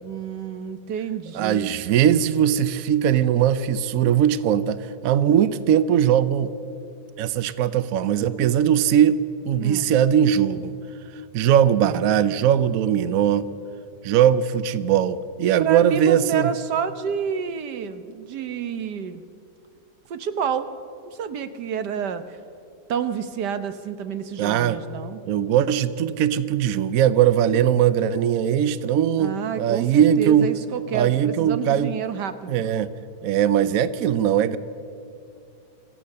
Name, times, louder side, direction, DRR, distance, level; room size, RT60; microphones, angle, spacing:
voice 1, 0.0-1.7 9.6-9.9 15.6-19.2 20.1-20.7 21.1-22.4 22.9-25.2 29.2-32.6, right 7 dB, 85° right, 11 dB, 1.6 m, -29 dB
voice 2, 1.3-6.5 7.2-10.7 11.3-13.5 14.0-16.5 24.4-24.8 25.3-30.5 30.9-31.9 32.5-32.9 33.2-34.6, right 9 dB, 65° right, 14 dB, 1.0 m, -20 dB
25.5 x 15.5 x 6.6 m, 2.5 s
omnidirectional pair, 1.7 m